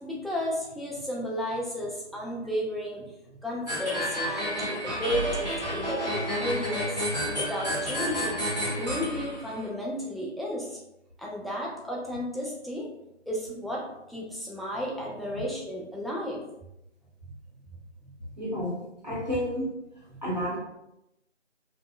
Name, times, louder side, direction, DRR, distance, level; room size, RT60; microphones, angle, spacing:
voice 1, 0.0-6.9 7.4-8.4 8.8-10.8 11.2-12.9 13.3-16.4 17.3-17.6 18.0-18.4 19.1-19.2 20.1-20.2, equal, ahead, -4 dB, 0.3 m, -33 dB
sound 1, 3.7-9.7, equal, 35° left, 0.7 m, -30 dB
voice 2, 18.4-19.7 20.2-20.6, equal, 35° right, -7 dB, 0.8 m, -30 dB
2.5 x 2.0 x 2.4 m, 0.86 s
figure-of-eight pair, 180°, 37 cm